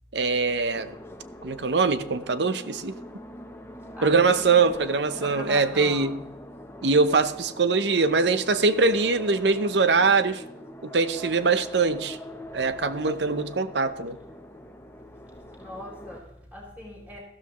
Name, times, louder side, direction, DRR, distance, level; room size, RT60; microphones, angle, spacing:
voice 1, 0.1-0.9 1.4-2.9 4.0-6.2 6.8-10.4 10.8-12.2 12.5-14.2, right 4 dB, 80° right, 12 dB, 0.8 m, -23 dB
sound 1, 0.7-16.2, left 1 dB, 15° left, 0.9 m, -43 dB
voice 2, 3.9-4.6 5.2-6.2 15.6-17.2, left 1 dB, 10° right, -4 dB, 4.9 m, -40 dB
14.5 x 13.0 x 3.1 m, 0.86 s
head